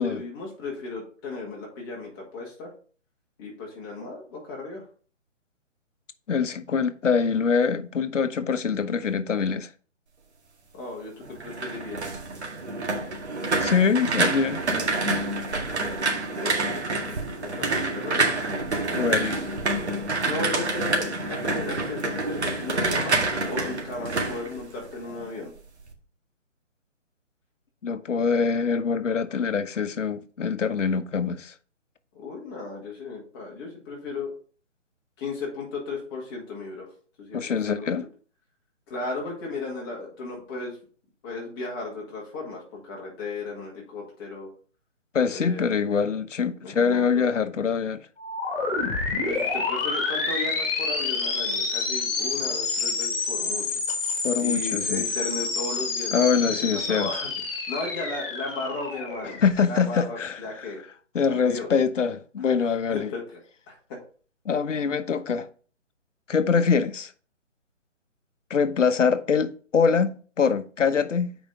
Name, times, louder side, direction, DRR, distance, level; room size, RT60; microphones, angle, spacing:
voice 1, 0.0-2.7 3.4-4.8 10.7-12.1 16.4-16.8 17.4-18.3 20.2-25.5 32.1-34.3 35.2-36.9 37.2-37.9 38.9-40.8 41.2-44.5 45.3-46.0 46.6-47.2 49.3-53.6 54.4-56.5 56.9-59.4 59.7-60.8 61.3-61.7 62.6-63.4 63.7-63.8, left 3 dB, 20° left, 1.9 m, -35 dB
voice 2, 6.3-9.7 13.6-14.6 18.9-19.4 27.8-31.5 37.3-38.0 45.1-48.1 54.2-55.0 56.1-57.1 59.4-60.7 61.1-63.1 64.4-65.5 66.3-67.1 68.5-71.4, left 6 dB, 75° left, 0.9 m, -24 dB
sound 1, 11.2-25.2 25.6-25.9, right 2 dB, 60° right, 1.9 m, -27 dB
sound 2, 48.2-59.9, left 4 dB, 50° left, 2.1 m, -28 dB
7.2 x 5.1 x 3.8 m
hypercardioid pair, 160°, 37 cm